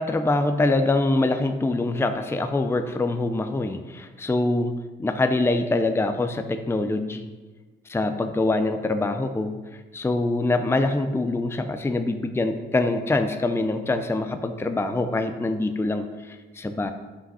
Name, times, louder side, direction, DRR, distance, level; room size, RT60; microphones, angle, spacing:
voice 1, 0.0-7.3 7.9-16.9, left 2 dB, 10° left, 8 dB, 0.6 m, -24 dB
7.8 x 5.8 x 5.6 m, 1.3 s
cardioid pair, 90°, 20 cm